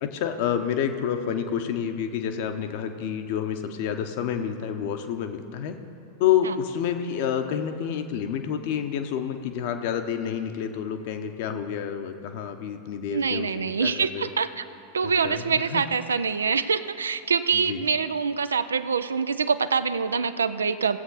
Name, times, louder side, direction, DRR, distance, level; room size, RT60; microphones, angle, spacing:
voice 1, 0.0-5.8 6.2-14.3 15.0-15.8 17.5-17.9, left 8 dB, 50° left, 7 dB, 0.8 m, -29 dB
voice 2, 13.1-14.6 14.9-21.0, right 5 dB, 70° right, 13 dB, 0.4 m, -25 dB
17.0 x 7.9 x 4.0 m, 2.6 s
figure-of-eight pair, 90°, 0 cm